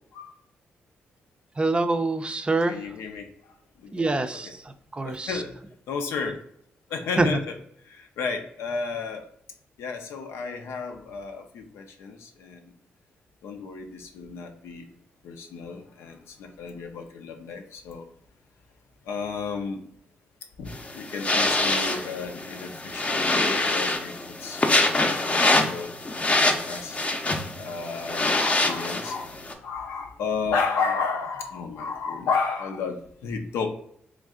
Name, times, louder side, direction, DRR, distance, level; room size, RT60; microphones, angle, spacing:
voice 1, 1.6-2.8 3.9-4.6 4.9-5.4 7.2-7.4, right 2 dB, 25° right, 8 dB, 0.4 m, -25 dB
voice 2, 2.7-3.3 3.8-3.9 4.3-4.5 5.0-5.6 5.9-6.4 6.9-7.5 7.9-9.3 9.8-12.7 13.4-14.9 15.2-18.1 19.1-19.9 20.6-24.6 24.9-25.9 26.4-27.0 27.6-29.4 29.6-33.7, left 5 dB, 85° left, 4 dB, 0.6 m, -32 dB
sound 1, 20.7-29.5, left 2 dB, 30° left, 0.6 m, -25 dB
3.2 x 2.5 x 3.6 m, 0.66 s
supercardioid pair, 60°, 4 cm